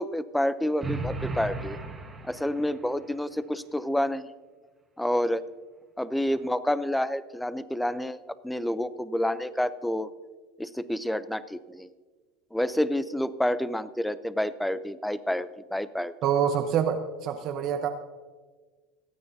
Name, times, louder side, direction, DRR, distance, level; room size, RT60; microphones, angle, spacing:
voice 1, 0.0-1.8 2.2-4.3 5.0-5.4 6.0-8.2 8.4-10.1 10.6-11.9 12.5-16.1, left 1 dB, 5° left, 15 dB, 0.6 m, -28 dB
sound 1, 0.8-2.9, right 3 dB, 15° right, 1.7 m, -35 dB
voice 2, 16.2-17.9, right 8 dB, 55° right, 5 dB, 0.9 m, -26 dB
27.5 x 9.5 x 2.8 m, 1.4 s
supercardioid pair, 105°, 0 cm